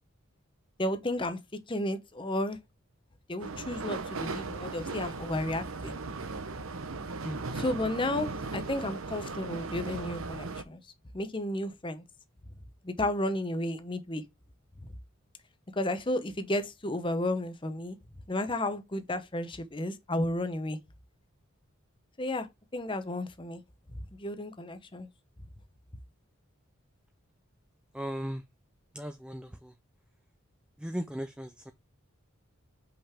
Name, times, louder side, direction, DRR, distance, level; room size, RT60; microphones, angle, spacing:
voice 1, 0.8-1.4 1.7-2.6 3.3-6.0 7.5-10.8 11.1-12.0 12.8-14.2 15.8-18.0 18.3-20.8 22.2-22.5 22.7-23.6 23.9-25.1, left 1 dB, 25° left, 0.8 m, -32 dB
sound 1, 3.4-10.6, right 3 dB, 80° right, 0.9 m, -37 dB
voice 2, 27.9-28.4 28.9-29.7 30.8-31.7, equal, 5° right, 0.4 m, -37 dB
5.6 x 5.3 x 3.4 m
head